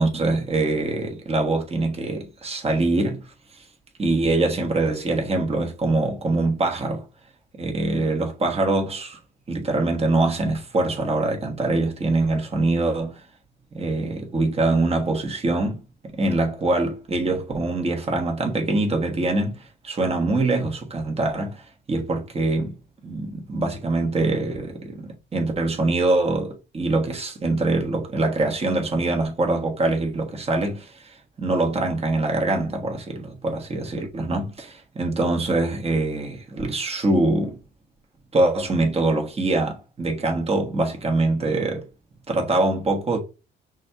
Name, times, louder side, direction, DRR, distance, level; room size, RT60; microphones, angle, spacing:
voice 1, 0.0-3.2 4.0-7.0 7.5-9.2 9.5-13.2 13.7-15.8 16.1-22.7 23.0-37.6 38.3-41.9 42.3-43.2, right 2 dB, 30° right, 1.3 m, -24 dB
6.1 x 2.7 x 2.3 m
cardioid pair, 90°, 20 cm